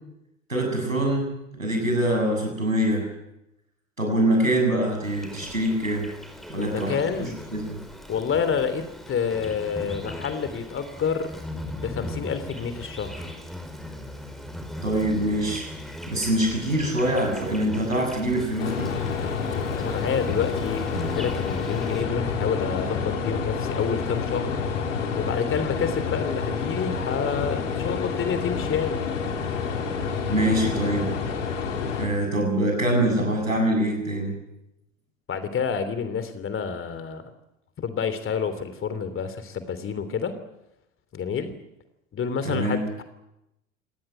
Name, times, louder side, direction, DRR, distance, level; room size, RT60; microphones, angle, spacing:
voice 1, 0.5-3.0 4.0-6.1 6.5-7.8 14.8-15.7 16.1-18.9 30.3-31.1 32.0-34.4 42.4-42.8, right 1 dB, 90° right, 1 dB, 7.2 m, -24 dB
Insect, 5.0-22.0, left 1 dB, ahead, 5.0 m, -38 dB
voice 2, 6.6-7.4 8.1-11.4 11.7-13.4 19.7-20.8 21.1-24.6 25.1-29.0 35.3-37.3 37.8-40.4 41.1-41.5 42.1-43.0, left 6 dB, 30° left, 11 dB, 3.2 m, -28 dB
sound 1, 18.6-32.1, left 5 dB, 70° left, 3.9 m, -28 dB
26.5 x 19.0 x 9.0 m, 0.90 s
figure-of-eight pair, 70°, 39 cm